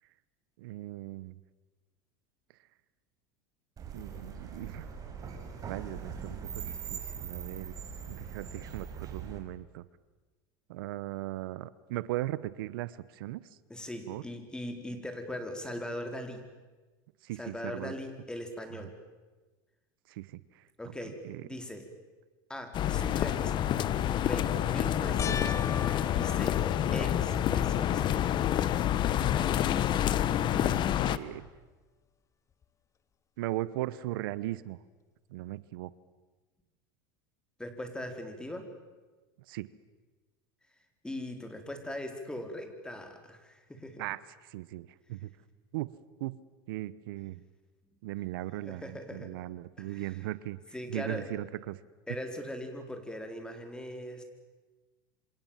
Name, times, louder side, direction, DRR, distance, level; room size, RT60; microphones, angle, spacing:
voice 1, 0.6-1.4 3.9-4.9 5.6-6.4 6.6-7.8 8.1-9.8 10.7-13.4 14.1-14.2 17.2-17.9 20.1-20.6 21.2-21.4 30.4-31.5 33.4-34.8 35.3-35.9 39.5-39.7 44.0-45.3 45.7-45.9 46.2-46.4 46.7-47.4 48.0-50.6 50.9-51.8, right 16 dB, 80° right, 18 dB, 1.0 m, -38 dB
sound 1, 3.8-9.4, right 6 dB, 30° right, 5.7 m, -41 dB
voice 2, 13.7-16.4 17.4-18.9 20.8-21.9 22.5-23.7 24.2-25.7 26.1-26.6 26.9-28.2 37.6-38.7 41.0-44.0 48.6-49.3 49.8-50.1 50.7-51.4 52.1-54.2, left 1 dB, 5° left, 6 dB, 4.4 m, -40 dB
sound 2, 22.7-31.2, left 11 dB, 40° left, 1.3 m, -28 dB
sound 3, 25.2-27.8 28.4-29.0 29.3-29.4 32.6-32.7, left 6 dB, 25° left, 0.8 m, -40 dB
27.5 x 26.5 x 7.5 m, 1.3 s
supercardioid pair, 115°, 12 cm